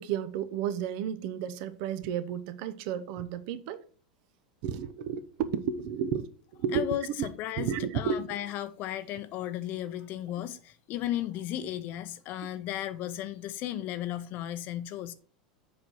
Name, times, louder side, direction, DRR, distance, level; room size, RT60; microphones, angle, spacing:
voice 1, 0.0-3.8 4.6-6.9 7.2-7.3 7.6-8.3, right 8 dB, 55° right, 0.7 m, -32 dB
voice 2, 6.7-15.1, left 12 dB, 50° left, 0.6 m, -35 dB
7.4 x 4.9 x 4.6 m
hypercardioid pair, 90°, 4 cm